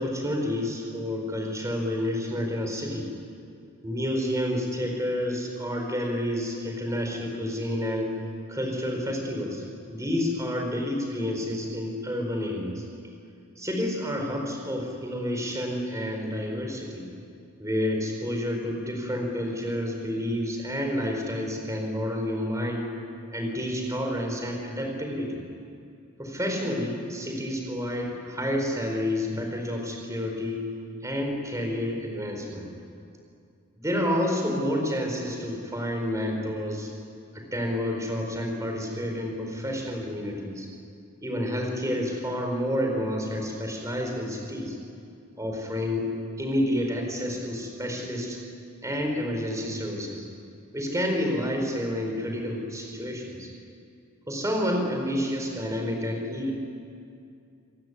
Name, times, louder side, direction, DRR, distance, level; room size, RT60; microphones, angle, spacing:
voice 1, 0.0-3.0 3.8-8.1 8.5-9.6 9.9-12.8 13.6-17.1 17.6-22.9 23.3-25.4 26.2-30.6 31.0-32.7 33.8-36.9 37.3-40.7 41.2-44.8 45.4-46.1 46.4-48.4 48.8-50.3 50.7-53.5 54.3-56.5, equal, 15° right, 2 dB, 4.5 m, -29 dB
27.0 x 16.5 x 9.8 m, 2.5 s
head